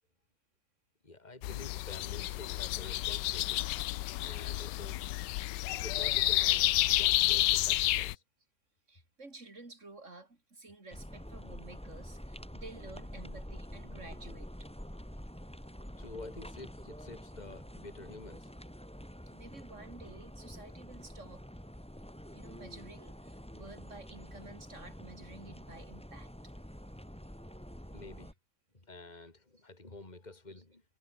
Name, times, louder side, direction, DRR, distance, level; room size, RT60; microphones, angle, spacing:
voice 1, 1.0-3.6 4.2-5.0 5.7-8.2 13.2-13.4 16.0-18.5 27.9-28.3 28.7-30.8, left 2 dB, 25° left, 3.7 m, -49 dB
sound 1, 1.4-8.2, left 16 dB, 85° left, 1.2 m, -30 dB
voice 2, 2.1-2.6 4.5-4.6 7.7-7.8 8.9-14.5 17.2-17.3 19.3-21.5 22.3-26.3 29.1-29.3 30.6-30.7, right 3 dB, 40° right, 4.7 m, -52 dB
sound 2, 10.9-28.3, equal, 5° left, 3.7 m, -47 dB
omnidirectional pair, 1.9 m